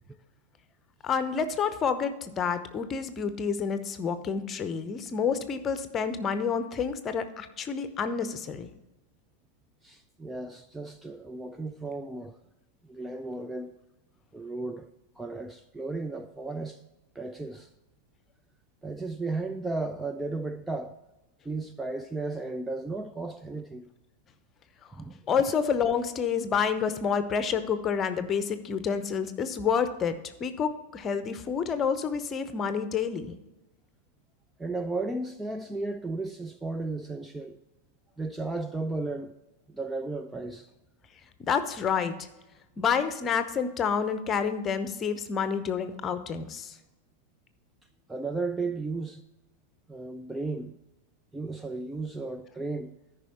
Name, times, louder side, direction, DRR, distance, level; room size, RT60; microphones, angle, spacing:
voice 1, 1.0-8.7 25.3-33.3 41.4-42.3 42.8-46.8, left 6 dB, 25° left, 0.8 m, -29 dB
voice 2, 9.8-12.4 12.8-13.7 14.3-14.9 15.2-16.8 17.2-17.7 18.8-21.0 21.4-23.9 24.9-25.2 34.6-37.6 38.2-39.3 39.7-40.7 48.1-49.2 49.9-50.8 51.3-52.9, right 3 dB, 5° right, 0.4 m, -34 dB
13.5 x 5.5 x 4.3 m
figure-of-eight pair, 90°, 0 cm